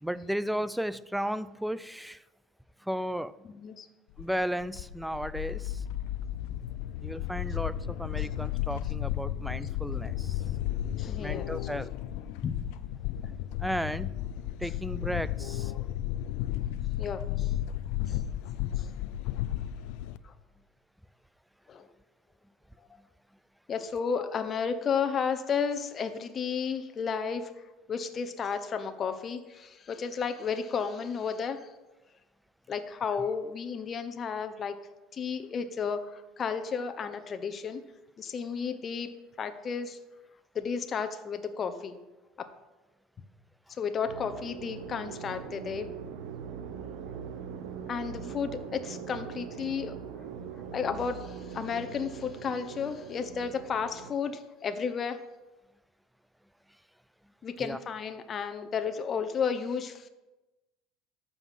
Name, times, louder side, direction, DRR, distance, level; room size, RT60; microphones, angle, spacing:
voice 1, 0.0-2.2 2.8-3.5 4.2-5.8 7.0-10.4 11.2-11.9 13.6-14.1 14.6-15.7 57.6-57.8, equal, ahead, 17 dB, 0.4 m, -34 dB
voice 2, 3.4-3.9 8.2-8.3 10.9-11.5 12.4-12.5 13.0-13.2 17.0-17.6 18.1-18.2 18.8-18.9 20.2-20.3 21.7-21.9 23.7-27.5 27.9-31.7 32.7-34.8 35.1-37.8 38.2-39.1 39.4-40.0 40.5-41.9 42.4-42.5 43.8-45.9 47.9-50.0 50.7-55.2 57.4-60.1, left 6 dB, 30° left, 8 dB, 0.9 m, -33 dB
sound 1, 4.2-20.2, left 12 dB, 75° left, 0.5 m, -33 dB
sound 2, 44.1-54.1, right 7 dB, 75° right, 0.9 m, -41 dB
12.0 x 5.6 x 7.5 m, 1.1 s
supercardioid pair, 120°, 0 cm